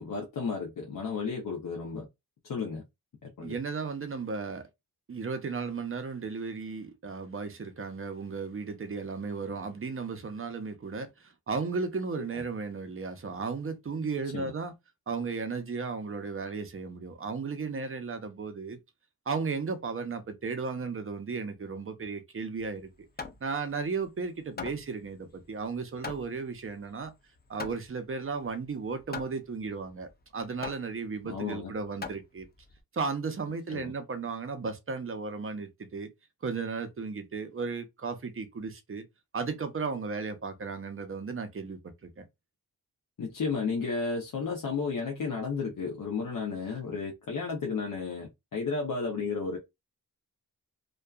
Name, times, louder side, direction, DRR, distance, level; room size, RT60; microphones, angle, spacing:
voice 1, 0.0-2.1 2.4-2.8 3.2-3.6 14.3-14.5 24.6-24.7 31.2-31.7 33.7-33.9 43.2-49.6, left 4 dB, 65° left, 0.7 m, -33 dB
voice 2, 3.4-4.7 5.1-14.7 15.1-18.8 19.3-22.9 23.4-27.1 27.5-32.5 32.9-36.1 36.4-39.0 39.3-42.2, right 4 dB, 40° right, 0.6 m, -35 dB
Hammer, 22.6-32.8, left 4 dB, 25° left, 0.5 m, -44 dB
2.6 x 2.3 x 2.3 m
wide cardioid pair, 85°, 35 cm